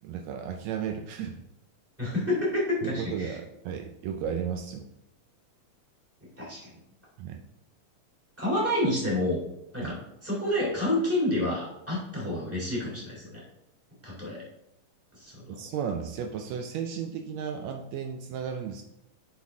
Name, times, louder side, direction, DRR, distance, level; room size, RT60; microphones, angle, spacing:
voice 1, 0.0-1.4 2.8-4.9 7.2-7.4 9.8-10.0 15.6-18.8, right 7 dB, 90° right, 5 dB, 1.5 m, -34 dB
voice 2, 2.0-3.4 6.4-6.7 8.4-9.4 9.7-9.9 10.2-13.4 14.0-14.4 15.1-15.6, left 1 dB, 5° right, -5 dB, 2.8 m, -29 dB
7.9 x 6.1 x 3.6 m, 0.82 s
omnidirectional pair, 3.8 m